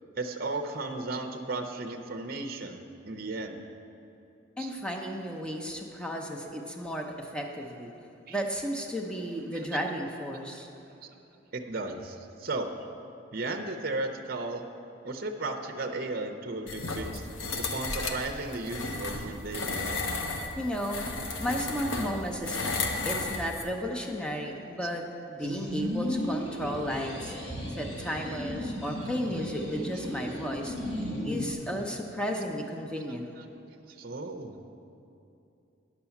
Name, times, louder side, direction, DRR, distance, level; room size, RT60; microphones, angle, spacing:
voice 1, 0.2-3.6 4.6-4.7 8.3-8.4 9.5-9.6 11.0-11.2 11.5-12.7 13.3-14.6 15.0-17.3 17.6-20.2 33.4-33.5 33.9-34.7, right 2 dB, 50° right, 5 dB, 0.6 m, -35 dB
voice 2, 4.6-7.9 8.3-10.7 20.6-21.0 21.4-25.0 25.3-27.4 27.7-33.3, equal, 5° left, 1 dB, 0.7 m, -34 dB
sound 1, 16.7-23.7, left 3 dB, 85° left, 0.9 m, -33 dB
sound 2, 25.4-31.5, equal, 60° left, 2.6 m, -35 dB
9.8 x 6.8 x 7.1 m, 2.8 s
head